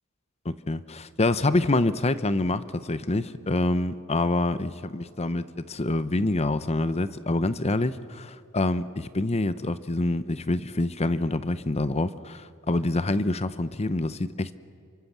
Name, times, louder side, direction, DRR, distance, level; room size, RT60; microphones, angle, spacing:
voice 1, 0.4-14.5, left 2 dB, 30° left, 14 dB, 0.8 m, -26 dB
27.5 x 24.5 x 7.4 m, 2.1 s
head